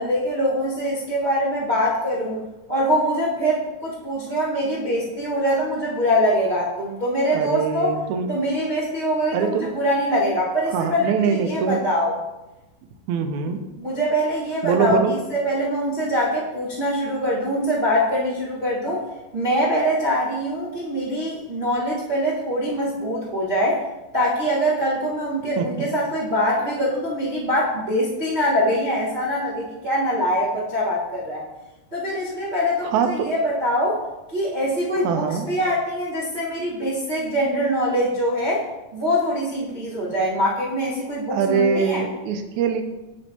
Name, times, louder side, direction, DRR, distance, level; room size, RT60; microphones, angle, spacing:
voice 1, 0.0-2.4 2.7-7.9 8.3-12.1 13.8-19.0 19.3-23.8 24.1-31.4 31.9-34.0 34.3-38.6 38.9-42.0, equal, 35° right, -9 dB, 0.7 m, -23 dB
voice 2, 7.3-8.3 9.3-9.7 10.7-11.8 13.1-13.6 14.6-15.1 25.6-25.9 32.8-33.3 35.0-35.5 41.3-42.8, right 7 dB, 80° right, 6 dB, 1.9 m, -23 dB
11.0 x 4.4 x 2.9 m, 1.0 s
omnidirectional pair, 3.5 m